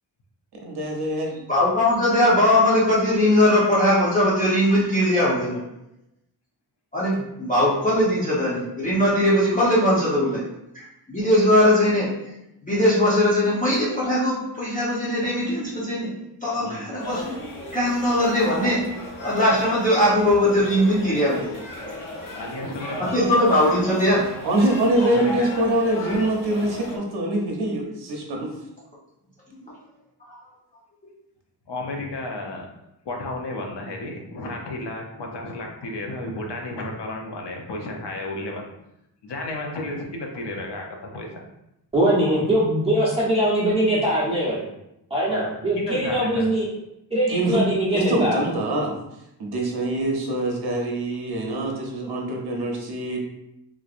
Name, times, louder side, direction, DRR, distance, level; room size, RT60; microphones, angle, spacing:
voice 1, 0.6-1.3 16.6-16.8 24.4-28.5 47.3-47.6 47.9-48.9 49.4-53.2, right 1 dB, 65° right, 0 dB, 0.9 m, -24 dB
voice 2, 1.3-5.6 6.9-10.4 10.7-10.8 11.1-12.1 12.6-16.1 16.4-17.4 17.7-18.9 19.2-21.5 23.0-24.3 29.7-29.8 30.3-30.4, left 1 dB, 20° left, -8 dB, 0.9 m, -20 dB
sound 1, 17.0-27.0, left 1 dB, 50° left, 1.1 m, -36 dB
voice 3, 22.3-23.1 25.0-25.5 31.7-32.7 33.0-38.7 39.2-41.4 45.3-45.5 45.8-46.5, left 2 dB, 75° left, 1 dB, 0.8 m, -32 dB
voice 4, 41.9-44.7 45.1-46.7 47.1-48.4, right 1 dB, 15° right, -8 dB, 1.1 m, -22 dB
3.6 x 3.1 x 2.5 m, 0.83 s
wide cardioid pair, 130°, 41 cm